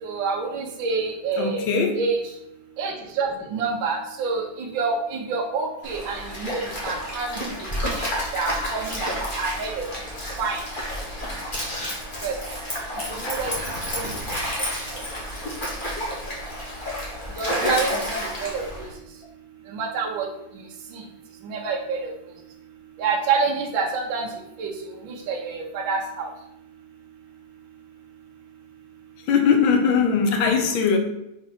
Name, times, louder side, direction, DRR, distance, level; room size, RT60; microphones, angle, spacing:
voice 1, 0.0-1.6 2.0-2.2 2.8-4.4 4.7-7.5 8.0-8.1 8.3-9.1 9.4-9.8 10.4-10.6 12.2-12.3 13.2-13.5 14.0-14.1 17.4-18.6 19.7-20.3 21.5-22.1 23.0-24.3 24.6-24.7 25.3-26.3, right 4 dB, 70° right, 1.6 m, -27 dB
voice 2, 1.3-2.0 29.3-31.0, left 5 dB, 70° left, 1.7 m, -20 dB
Stream, 5.8-18.9, equal, 25° left, 1.7 m, -30 dB
5.3 x 4.3 x 5.8 m
omnidirectional pair, 2.3 m